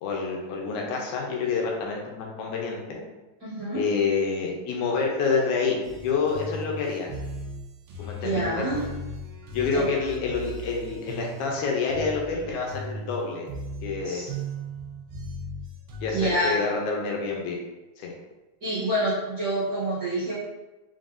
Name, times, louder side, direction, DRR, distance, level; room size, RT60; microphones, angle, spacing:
voice 1, 0.0-3.0 3.7-7.1 8.0-8.6 9.5-13.5 13.8-14.2 16.0-17.6 18.0-18.1, left 4 dB, 80° left, -1 dB, 2.1 m, -28 dB
voice 2, 3.4-3.8 8.2-8.8 9.7-9.9 14.0-14.3 16.1-16.6 18.6-20.3, right 1 dB, 40° right, -13 dB, 1.5 m, -27 dB
sound 1, 5.8-16.3, right 1 dB, 75° right, 1.5 m, -37 dB
4.8 x 3.7 x 2.6 m, 1.1 s
omnidirectional pair, 3.5 m